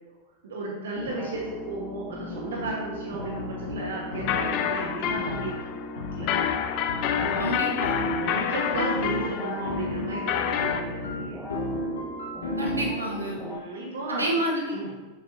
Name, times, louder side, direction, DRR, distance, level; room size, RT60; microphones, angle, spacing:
voice 1, 0.4-5.6 5.9-6.3 7.1-7.6 8.0-11.5 13.4-14.3 14.7-14.9, right 2 dB, 60° right, -3 dB, 1.2 m, -34 dB
sound 1, 1.0-13.6, left 1 dB, 10° left, 0.8 m, -40 dB
sound 2, 2.6-2.7 3.2-4.6 5.0-5.5 6.0-6.4 6.9-13.2, left 1 dB, 70° left, 1.1 m, -33 dB
sound 3, 4.1-10.8, left 9 dB, 40° left, 0.5 m, -28 dB
voice 2, 7.4-8.0 12.6-13.4 14.1-15.0, right 1 dB, 80° right, -3 dB, 1.4 m, -29 dB
7.1 x 6.8 x 2.7 m, 1.2 s
figure-of-eight pair, 90°, 0 cm